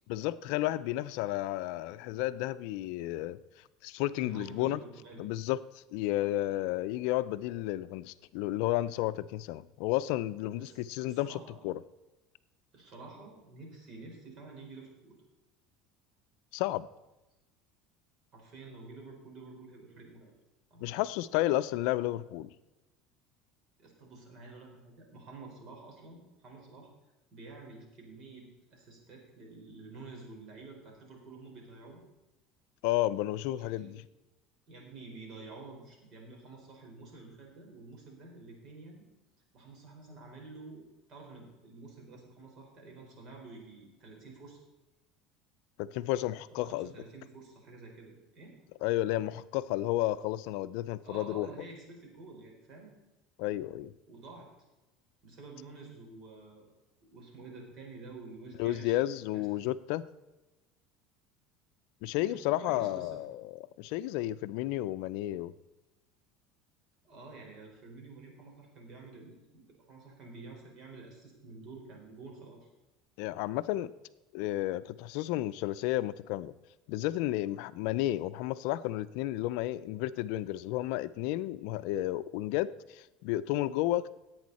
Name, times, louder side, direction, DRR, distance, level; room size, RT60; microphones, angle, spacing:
voice 1, 0.1-3.4 3.8-4.8 5.2-5.6 5.9-11.4 11.6-11.8 16.5-16.9 20.8-22.5 32.8-34.0 45.8-46.9 48.8-51.5 53.4-53.9 58.6-60.1 62.0-65.5 73.2-73.9 74.3-76.5 76.9-84.1, left 15 dB, 70° left, 14 dB, 0.5 m, -32 dB
voice 2, 4.1-5.2 10.6-11.6 12.7-15.2 18.3-20.3 20.7-21.0 23.8-26.9 27.3-32.0 33.6-33.9 34.7-39.0 39.5-44.6 46.6-48.5 51.0-52.9 54.1-54.5 55.2-56.7 57.0-59.5 62.1-63.2 67.0-72.7, right 3 dB, 45° right, 0 dB, 4.7 m, -49 dB
17.0 x 8.6 x 4.2 m, 1.0 s
supercardioid pair, 130°, 0 cm